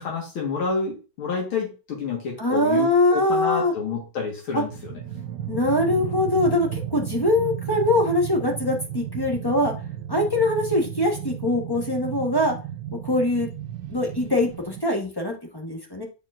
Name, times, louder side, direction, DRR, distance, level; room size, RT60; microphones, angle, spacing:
voice 1, 0.0-5.0, left 5 dB, 80° left, -1 dB, 2.4 m, -29 dB
voice 2, 2.4-3.7 4.5-4.6 5.5-9.7 10.1-12.6 13.0-13.5 13.9-16.0, left 1 dB, 15° left, 0 dB, 0.8 m, -22 dB
sound 1, 4.7-14.8, right 10 dB, 70° right, 1.1 m, -34 dB
10.0 x 4.5 x 2.5 m, 0.32 s
omnidirectional pair, 2.3 m